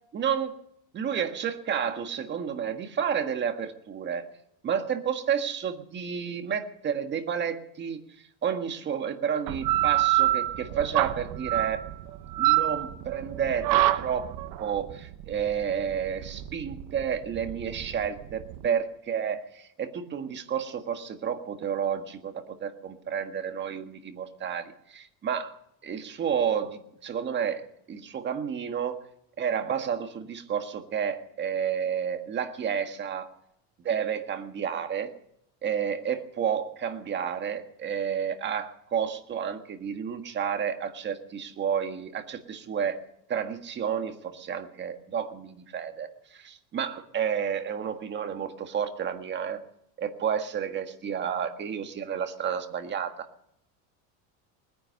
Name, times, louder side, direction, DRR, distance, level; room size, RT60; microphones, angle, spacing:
voice 1, 0.1-0.6 0.9-4.3 4.6-8.0 8.4-11.9 12.4-14.3 14.6-25.6 25.8-29.0 29.4-33.3 33.8-35.1 35.6-43.0 43.3-49.6 50.0-53.3, right 8 dB, 30° right, 7 dB, 1.7 m, -31 dB
sound 1, 9.5-18.7, right 15 dB, 65° right, 1.2 m, -26 dB
20.5 x 10.0 x 6.6 m, 0.74 s
cardioid pair, 145°, 37 cm